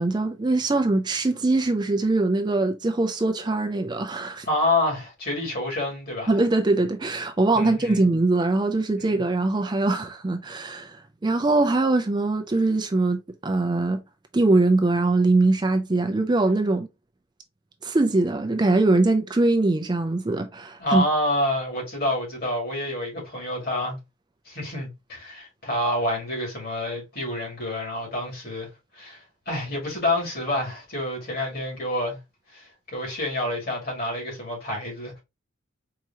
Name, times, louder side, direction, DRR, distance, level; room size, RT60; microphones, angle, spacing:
voice 1, 0.0-4.5 6.3-14.0 14.3-16.9 17.8-21.0, right 2 dB, 20° right, 0.4 m, -22 dB
voice 2, 4.4-6.3 7.5-8.0 9.0-9.1 20.8-24.0 24.5-32.2 32.5-35.2, left 1 dB, 50° left, 2.3 m, -28 dB
4.7 x 2.9 x 2.8 m
head